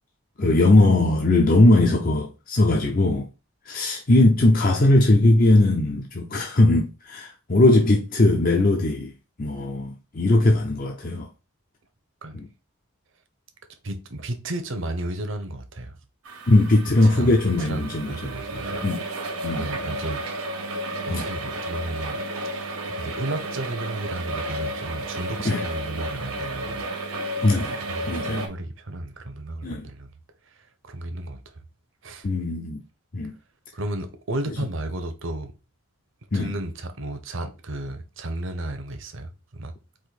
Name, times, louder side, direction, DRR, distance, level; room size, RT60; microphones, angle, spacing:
voice 1, 0.4-3.3 3.7-9.1 9.4-11.3 12.3-12.5 16.5-18.3 18.8-19.0 19.4-19.7 21.1-21.3 25.4-25.6 27.4-27.8 28.1-28.4 29.6-29.9 32.2-32.8 33.1-33.3 36.3-36.5, left 2 dB, 40° left, 0.6 m, -19 dB
voice 2, 13.8-15.9 17.0-18.8 19.5-20.4 21.0-22.2 22.5-26.9 27.9-30.1 30.8-31.4 32.0-32.3 33.7-35.5 36.3-39.7, right 1 dB, 60° right, 0.8 m, -33 dB
sound 1, 16.2-28.5, right 1 dB, 85° right, 1.3 m, -32 dB
4.9 x 2.6 x 4.1 m
head